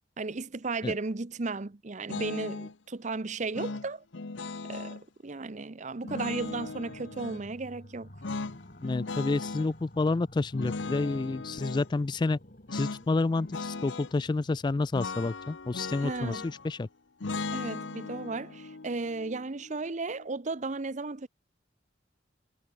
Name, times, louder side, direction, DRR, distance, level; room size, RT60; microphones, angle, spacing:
voice 1, 0.2-4.0 4.7-8.1 16.0-16.4 17.5-21.3, right 3 dB, 40° right, 0.8 m, -35 dB
sound 1, 2.1-2.7 3.5-5.0 6.0-7.4 8.2-9.7 10.5-11.9 12.7-13.0 13.3-14.1 14.9-16.7 17.2-20.3, left 3 dB, 75° left, 0.9 m, -38 dB
sound 2, 6.3-16.7, left 1 dB, 45° left, 4.7 m, -53 dB
voice 2, 8.8-12.4 12.7-16.9, left 3 dB, 25° left, 0.3 m, -29 dB
head